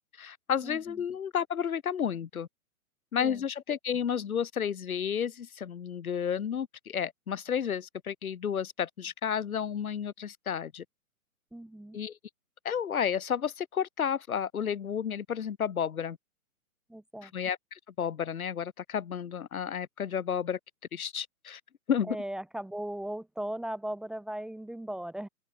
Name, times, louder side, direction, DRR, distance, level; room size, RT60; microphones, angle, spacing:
voice 1, 0.0-2.5 3.1-10.8 11.9-12.2 12.6-16.2 17.2-20.6 20.9-21.6 21.9-22.2, left 8 dB, 70° left, 3.6 m, -32 dB
voice 2, 0.6-1.0 3.2-3.4 11.5-12.0 16.9-17.3 22.1-25.3, right 1 dB, ahead, 2.4 m, -38 dB
open air
hypercardioid pair, 160°, 44 cm